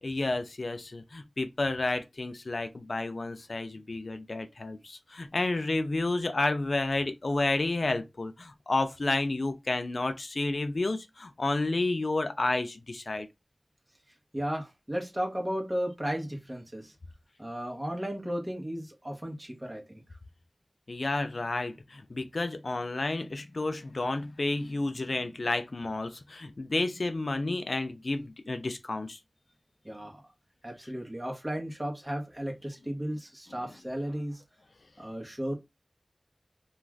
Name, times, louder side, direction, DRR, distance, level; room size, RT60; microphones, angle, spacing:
voice 1, 0.0-13.3 20.9-29.2, left 2 dB, 70° left, 0.4 m, -31 dB
voice 2, 14.3-16.9 17.4-20.0 29.8-30.2 30.6-34.4 35.0-35.6, equal, 20° right, 1.0 m, -34 dB
2.4 x 2.4 x 3.2 m
wide cardioid pair, 65°, 0 cm